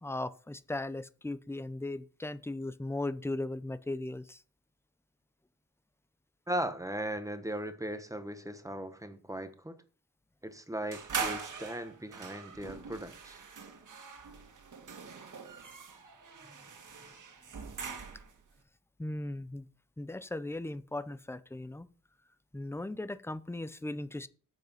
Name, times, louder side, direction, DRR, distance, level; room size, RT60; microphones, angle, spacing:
voice 1, 0.0-4.4 19.0-19.7 20.0-21.9 22.5-24.3, left 2 dB, 10° left, 0.6 m, -37 dB
voice 2, 6.5-9.8 10.4-13.4, right 1 dB, 10° right, 1.1 m, -38 dB
sound 1, 10.9-18.4, right 5 dB, 65° right, 2.0 m, -42 dB
9.2 x 8.1 x 5.5 m
wide cardioid pair, 145°, 33 cm